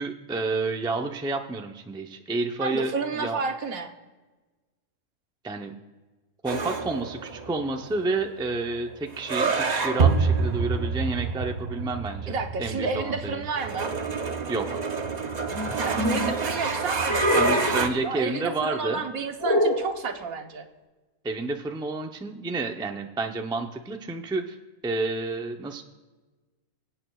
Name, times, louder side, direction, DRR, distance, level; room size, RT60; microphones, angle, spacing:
voice 1, 0.0-3.4 5.4-5.8 6.4-12.3 12.6-13.4 14.5-14.8 17.4-19.0 21.2-24.6 24.8-25.8, right 3 dB, 5° right, 4 dB, 0.4 m, -30 dB
voice 2, 2.6-3.9 12.3-13.9 15.8-20.7, right 4 dB, 80° right, 6 dB, 1.4 m, -31 dB
sound 1, 6.5-17.9, right 4 dB, 35° right, 0.8 m, -28 dB
sound 2, 15.5-16.3 17.0-17.9 19.4-19.9, equal, 15° left, 1.5 m, -24 dB
25.0 x 8.5 x 2.4 m, 1.2 s
omnidirectional pair, 1.5 m